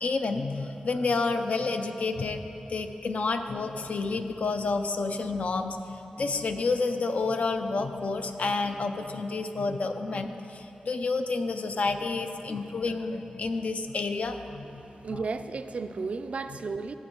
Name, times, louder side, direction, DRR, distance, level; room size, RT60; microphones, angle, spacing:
voice 1, 0.0-2.4 2.7-5.8 6.2-14.8 15.1-15.2, left 3 dB, 60° left, 7 dB, 0.5 m, -29 dB
voice 2, 14.7-16.9, right 4 dB, 55° right, 9 dB, 0.3 m, -34 dB
16.0 x 7.1 x 3.0 m, 2.9 s
wide cardioid pair, 115°, 3 cm